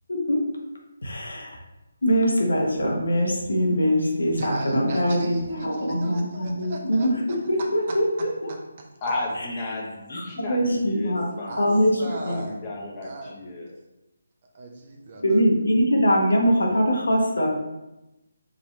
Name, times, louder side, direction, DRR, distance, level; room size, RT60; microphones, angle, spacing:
voice 1, 0.1-0.4 1.0-1.6 2.0-5.4 5.6-8.5 9.4-9.5 10.1-12.4 15.2-17.5, equal, 75° left, 0 dB, 1.1 m, -23 dB
voice 2, 4.4-7.1 8.5-8.9 11.5-11.7 12.0-12.6 13.0-13.4 14.5-15.4, right 2 dB, 40° right, 1 dB, 0.8 m, -36 dB
voice 3, 9.0-13.8, left 2 dB, 25° left, -3 dB, 1.1 m, -33 dB
5.1 x 2.9 x 3.2 m, 0.96 s
figure-of-eight pair, 150°, 0 cm